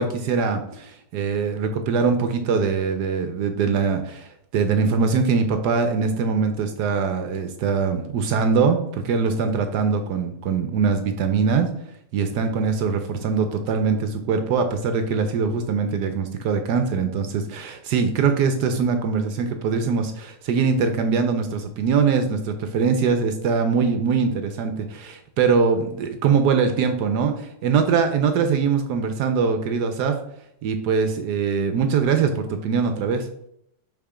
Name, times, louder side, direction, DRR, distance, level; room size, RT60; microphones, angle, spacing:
voice 1, 0.0-11.7 12.1-30.2 30.6-33.3, right 5 dB, 70° right, 7 dB, 1.1 m, -22 dB
5.8 x 3.6 x 4.9 m, 0.73 s
omnidirectional pair, 2.0 m